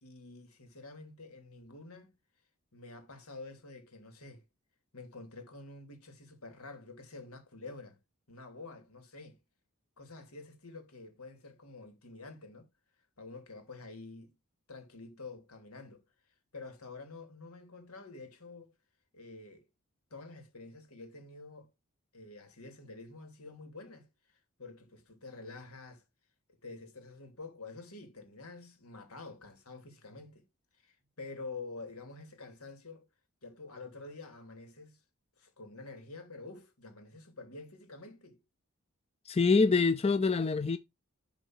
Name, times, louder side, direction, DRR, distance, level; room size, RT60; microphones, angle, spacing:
voice 1, 0.0-2.1 2.7-4.4 4.9-8.0 8.3-9.4 10.0-12.7 13.2-14.3 14.7-16.0 16.5-18.7 19.1-19.6 20.1-21.7 22.1-26.0 26.6-30.4 30.8-33.1 33.4-35.0 35.4-38.4, left 3 dB, 85° left, 2.9 m, -48 dB
voice 2, 39.3-40.8, left 4 dB, 25° left, 0.4 m, -25 dB
11.5 x 3.9 x 4.6 m
head